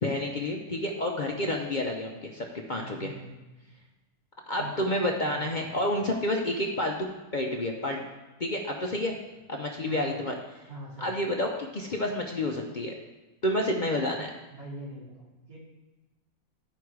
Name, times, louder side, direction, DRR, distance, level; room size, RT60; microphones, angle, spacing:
voice 1, 0.0-3.1 4.5-8.0 8.4-9.2 9.5-10.3 11.0-12.9 13.4-14.3, left 1 dB, 45° left, 0 dB, 0.6 m, -29 dB
voice 2, 2.7-3.3 4.5-4.9 5.2-5.7 9.8-10.2 10.7-11.2 14.5-15.6, right 1 dB, 70° right, -7 dB, 3.4 m, -42 dB
12.0 x 4.8 x 4.7 m, 1.1 s
omnidirectional pair, 1.7 m